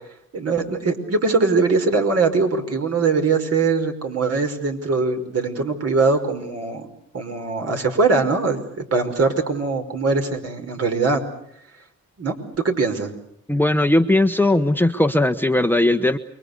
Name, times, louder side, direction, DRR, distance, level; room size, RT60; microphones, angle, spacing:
voice 1, 0.3-6.9 7.1-11.3 12.2-12.4 12.6-13.1, right 4 dB, 55° right, 5 dB, 5.4 m, -21 dB
voice 2, 13.5-16.2, left 1 dB, 5° left, 8 dB, 1.1 m, -18 dB
29.0 x 23.5 x 6.8 m, 0.70 s
cardioid pair, 90°, 30 cm